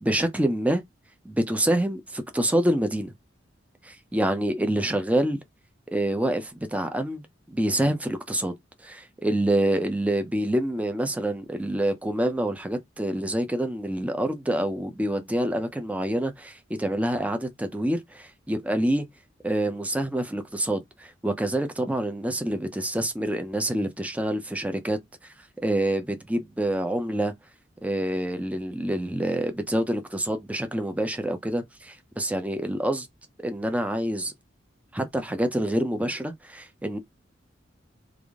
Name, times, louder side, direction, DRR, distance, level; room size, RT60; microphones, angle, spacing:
voice 1, 0.0-0.8 1.2-3.1 3.8-5.4 5.9-8.5 8.8-19.1 19.4-25.0 25.6-27.3 27.8-33.1 33.4-34.3 34.9-37.0, right 1 dB, 10° right, 0.6 m, -27 dB
3.5 x 2.5 x 3.5 m
head